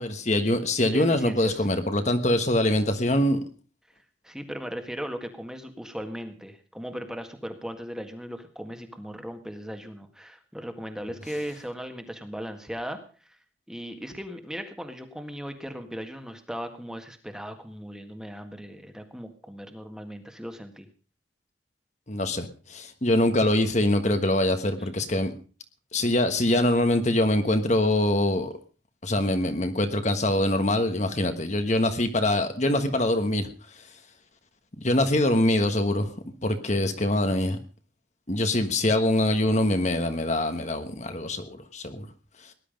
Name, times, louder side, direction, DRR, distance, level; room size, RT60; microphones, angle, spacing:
voice 1, 0.0-3.4 22.1-25.3 25.9-28.5 29.0-33.5 34.8-36.1 36.4-37.6 38.3-42.1, left 1 dB, 35° left, 7 dB, 1.3 m, -24 dB
voice 2, 0.9-1.7 4.2-13.4 13.7-20.9, equal, 5° right, 6 dB, 1.7 m, -37 dB
19.0 x 11.0 x 5.2 m, 0.39 s
head